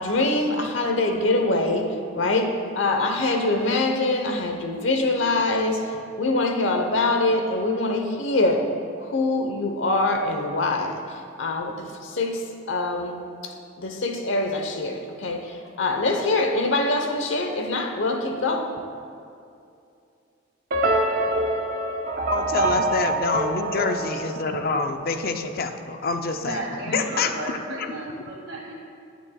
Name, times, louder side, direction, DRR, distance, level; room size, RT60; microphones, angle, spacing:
voice 1, 0.0-8.7 9.0-18.7, left 2 dB, 70° left, 4 dB, 1.0 m, -24 dB
sound 1, 20.7-25.0, right 2 dB, 45° right, 0.6 m, -25 dB
voice 2, 22.3-27.9, left 4 dB, 50° left, 6 dB, 0.5 m, -27 dB
voice 3, 26.4-28.7, right 1 dB, 75° right, -2 dB, 2.1 m, -33 dB
19.5 x 7.2 x 2.3 m, 2.5 s
head